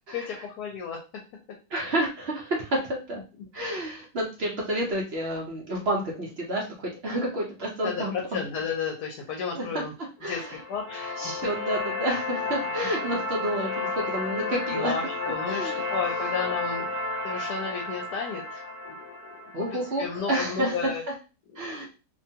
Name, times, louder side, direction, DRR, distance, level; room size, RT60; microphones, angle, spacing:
voice 1, 0.1-1.0 7.8-9.9 10.3-11.3 14.7-16.8 17.2-19.5 20.0-21.0 21.5-21.9, left 6 dB, 70° left, 0 dB, 1.1 m, -33 dB
voice 2, 1.7-3.2 3.5-8.1 9.5-9.8 10.2-10.6 11.2-15.0 15.3-15.9 19.5-20.9 21.6-21.9, right 1 dB, 60° right, -2 dB, 0.6 m, -30 dB
sound 1, 10.3-20.4, left 3 dB, 35° left, 0.6 m, -32 dB
2.9 x 2.2 x 2.7 m, 0.32 s
omnidirectional pair, 1.9 m